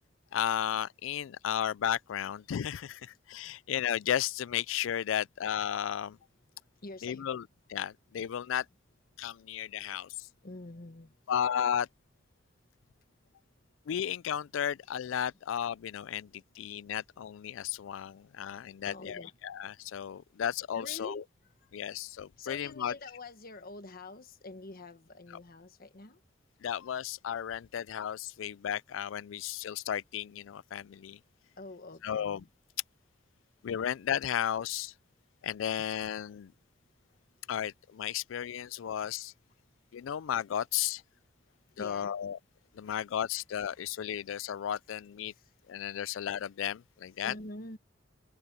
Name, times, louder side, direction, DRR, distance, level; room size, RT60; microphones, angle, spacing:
voice 1, 0.3-6.2 7.0-7.4 7.7-8.7 9.2-10.1 11.3-11.9 13.9-16.3 16.6-21.2 21.7-22.9 26.6-31.2 32.0-32.4 33.6-34.9 35.4-36.5 37.5-39.3 39.9-41.0 41.8-42.4 42.8-45.3 45.7-47.3, left 9 dB, 85° left, 0.4 m, -34 dB
voice 2, 6.8-7.2 10.4-11.1 18.8-19.4 20.7-21.2 22.4-26.2 31.6-32.5 41.8-42.1 42.8-43.0 43.6-44.0 45.4-45.5 47.2-47.8, left 2 dB, 50° left, 1.5 m, -46 dB
head